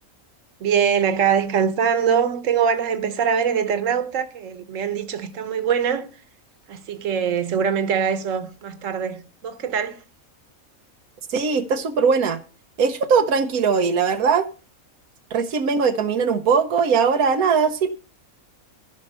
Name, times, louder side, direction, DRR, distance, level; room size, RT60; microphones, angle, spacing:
voice 1, 0.6-6.1 6.7-10.0, right 7 dB, 65° right, 1.4 m, -23 dB
voice 2, 11.3-12.4 12.8-14.5 15.3-17.9, right 5 dB, 90° right, 1.3 m, -20 dB
15.5 x 5.5 x 5.5 m
omnidirectional pair, 1.5 m